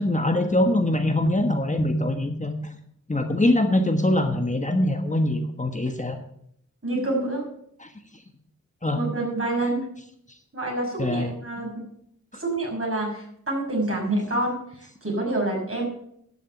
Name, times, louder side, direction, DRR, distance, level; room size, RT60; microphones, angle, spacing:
voice 1, 0.0-2.5 3.1-6.2 7.8-7.9 8.8-9.0 11.0-11.3, left 1 dB, 25° left, 5 dB, 1.3 m, -23 dB
voice 2, 6.8-7.5 8.9-9.9 10.5-11.8 12.3-15.9, right 2 dB, 45° right, -2 dB, 5.9 m, -27 dB
12.0 x 7.2 x 7.0 m, 0.71 s
wide cardioid pair, 70°, 30 cm